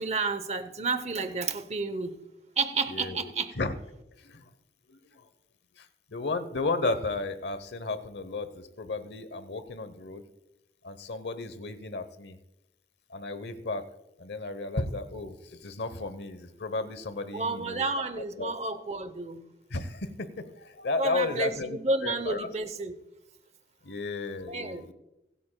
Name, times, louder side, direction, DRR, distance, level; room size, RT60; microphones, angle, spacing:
voice 1, 0.0-2.1 2.6-3.5 17.3-19.4 21.0-22.9 24.5-24.8, right 3 dB, 35° right, 0.8 m, -31 dB
voice 2, 2.9-3.7 4.2-4.5 4.9-5.3 5.8-10.2 10.8-12.4 13.1-13.8 14.2-17.9 18.4-18.5 19.7-22.5 23.8-24.9, left 3 dB, 75° left, 0.9 m, -34 dB
25.0 x 9.2 x 2.3 m
head